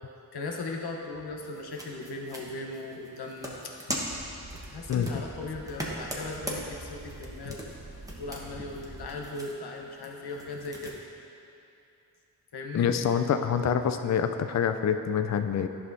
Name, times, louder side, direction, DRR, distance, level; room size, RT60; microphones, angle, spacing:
voice 1, 0.3-3.5 4.7-7.6 8.2-11.0 12.5-12.9, left 2 dB, 75° left, 0 dB, 1.0 m, -38 dB
sound 1, 1.4-11.0, equal, 10° right, 1.1 m, -41 dB
sound 2, 4.1-9.2, right 2 dB, 60° right, 1.5 m, -46 dB
voice 2, 4.9-5.2 12.7-15.7, left 7 dB, 45° left, 8 dB, 0.4 m, -26 dB
11.0 x 5.6 x 2.6 m, 2.7 s
cardioid pair, 65°, 39 cm